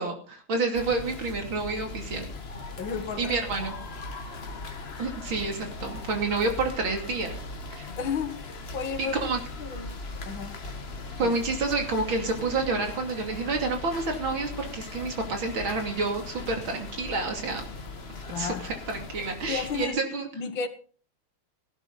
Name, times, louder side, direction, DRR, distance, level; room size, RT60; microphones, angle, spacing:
voice 1, 0.0-2.3 3.2-3.8 5.0-7.3 7.7-7.9 9.0-9.4 11.2-17.7 18.3-20.3, right 3 dB, 70° right, 3.5 m, -29 dB
sound 1, 0.7-19.9, left 3 dB, 35° left, 1.4 m, -39 dB
voice 2, 2.8-3.3 3.6-3.7 8.0-9.1 9.6-10.0 10.3-10.6 11.2-11.3 18.3-18.7 19.5-20.0 20.3-20.7, left 6 dB, 70° left, 2.1 m, -33 dB
16.5 x 11.5 x 4.0 m
omnidirectional pair, 2.3 m